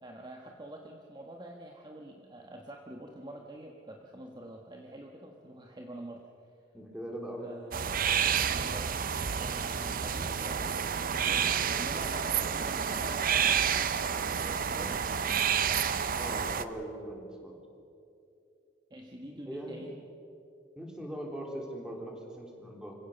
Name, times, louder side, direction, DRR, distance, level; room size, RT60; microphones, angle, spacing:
voice 1, 0.0-6.3 7.4-8.0 8.5-9.1 9.3-10.8 11.2-13.8 14.4-15.1 15.7-15.9 18.9-19.9, right 1 dB, 25° right, 1 dB, 1.4 m, -46 dB
voice 2, 6.7-7.6 16.2-17.6 19.5-19.9 20.8-23.0, right 1 dB, 5° right, 0 dB, 3.6 m, -40 dB
sound 1, 7.7-16.6, right 7 dB, 50° right, 0.7 m, -29 dB
26.5 x 16.5 x 6.8 m, 2.7 s
head